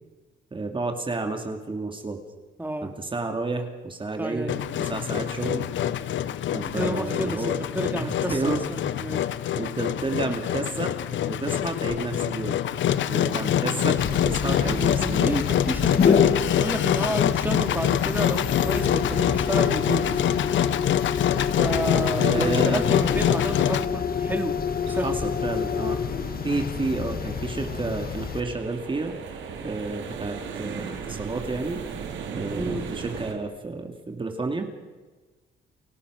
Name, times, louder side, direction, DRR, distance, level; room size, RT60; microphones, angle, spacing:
voice 1, 0.5-2.2 2.8-5.7 6.5-7.6 8.0-8.6 9.5-10.9 11.2-12.6 13.0-15.4 22.2-23.1 24.9-26.0 26.4-29.2 29.6-31.8 32.4-34.7, right 3 dB, 25° right, 4 dB, 2.4 m, -31 dB
voice 2, 2.6-2.9 4.2-4.7 6.7-9.2 13.6-13.8 14.4-20.1 21.6-24.6 24.9-25.1 32.5-32.9, right 1 dB, 10° right, 5 dB, 2.5 m, -30 dB
Engine, 4.5-23.9, left 10 dB, 70° left, 0.9 m, -25 dB
sound 1, 14.0-28.4, left 6 dB, 50° left, 1.7 m, -27 dB
sound 2, 24.6-33.3, right 6 dB, 75° right, 3.3 m, -38 dB
29.5 x 14.0 x 6.4 m, 1.3 s
cardioid pair, 90°, 20 cm